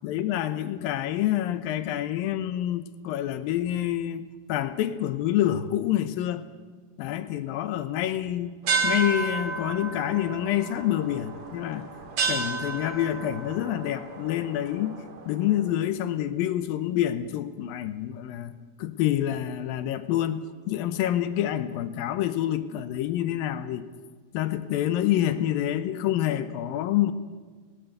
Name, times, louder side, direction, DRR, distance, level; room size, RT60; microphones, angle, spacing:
voice 1, 0.0-4.2 4.5-6.5 7.0-8.5 8.8-11.9 12.3-15.0 15.3-23.9 24.3-27.1, left 12 dB, 75° left, 12 dB, 2.3 m, -27 dB
sound 1, 8.6-15.5, right 4 dB, 50° right, 2.6 m, -32 dB
19.0 x 18.5 x 8.0 m, 1.4 s
omnidirectional pair, 4.8 m